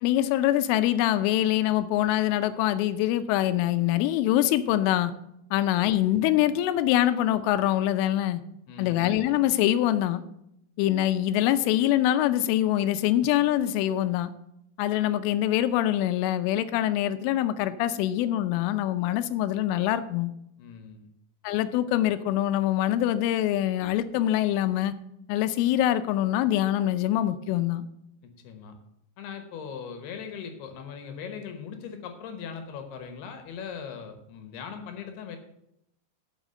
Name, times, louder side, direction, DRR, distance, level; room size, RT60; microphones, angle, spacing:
voice 1, 0.0-5.1 5.5-8.4 8.8-10.2 10.8-14.3 14.8-20.3 21.4-24.9 25.3-27.8, left 13 dB, 90° left, 12 dB, 3.2 m, -24 dB
voice 2, 8.7-9.1 20.6-21.1 28.2-28.8 29.2-35.4, left 7 dB, 70° left, 7 dB, 2.7 m, -40 dB
11.0 x 5.9 x 6.5 m, 0.80 s
omnidirectional pair, 5.5 m